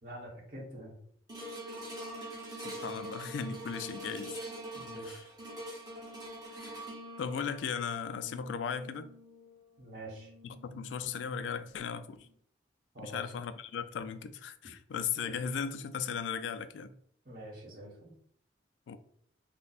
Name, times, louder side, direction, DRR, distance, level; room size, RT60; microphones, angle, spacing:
voice 1, 0.0-1.0 4.7-5.1 9.8-10.3 12.9-13.2 15.1-15.4 17.2-18.1, right 1 dB, 50° right, 1.3 m, -46 dB
sound 1, 1.3-11.7 12.2-12.3, right 1 dB, 20° right, 1.1 m, -45 dB
voice 2, 2.6-4.4 5.0-5.3 6.5-6.8 7.2-9.1 10.4-12.3 13.0-16.9 18.9-19.0, left 6 dB, 85° left, 0.3 m, -37 dB
3.3 x 2.1 x 4.1 m
head